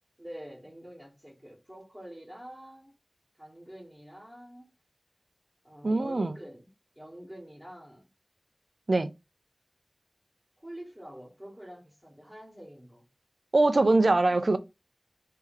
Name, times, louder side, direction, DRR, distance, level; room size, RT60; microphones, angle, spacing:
voice 1, 0.2-2.9 3.4-4.7 5.6-6.7 6.9-8.1 10.6-13.1 14.0-14.5, equal, 15° right, 1.6 m, -46 dB
voice 2, 5.8-6.3 8.9-9.1 13.5-14.6, right 2 dB, 65° right, 0.5 m, -22 dB
3.3 x 2.8 x 3.4 m
wide cardioid pair, 60°, 0 cm